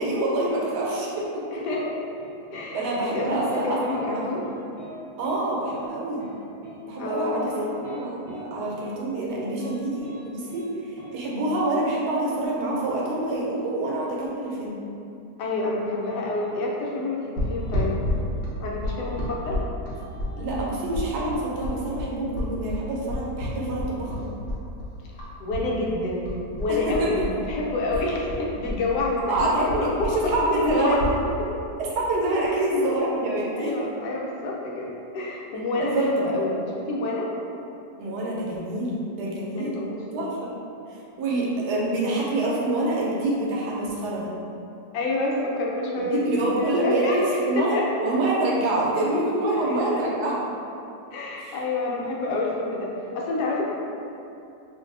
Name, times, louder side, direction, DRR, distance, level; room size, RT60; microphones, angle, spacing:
voice 1, 0.0-1.6 2.7-4.2 5.2-6.3 6.8-14.8 20.3-24.2 26.7-27.2 29.3-31.1 31.8-33.7 35.7-36.6 38.0-39.8 40.1-40.3 40.9-44.3 46.0-50.3 51.4-51.6 52.0-52.1, right 2 dB, 80° right, -4 dB, 1.2 m, -26 dB
voice 2, 1.5-1.8 2.5-4.4 7.0-7.7 15.4-17.9 18.6-19.6 25.1-31.0 32.5-32.6 33.6-36.6 36.9-37.3 39.6-40.3 44.9-47.8 49.5-50.0 51.1-53.6, left 2 dB, 80° left, -3 dB, 1.2 m, -28 dB
sound 1, 1.7-1.9 2.2-2.7 2.9-3.1 3.4-3.6 3.9-4.1 4.4-4.9 5.2-5.4 5.7-5.8 6.2-6.4 6.6-6.8 7.2-8.4 8.8-8.9 9.3-9.7 10.0-10.2 10.5-10.6 11.0-11.1 13.3-14.1 16.0-16.7 17.6-18.4 18.8-19.7 19.9-21.1, right 1 dB, 45° right, 0.9 m, -45 dB
sound 2, 17.4-25.7 25.9-27.6 27.9-31.2, left 1 dB, 50° left, 0.7 m, -30 dB
2.6 x 2.6 x 3.7 m, 2.7 s
omnidirectional pair, 1.8 m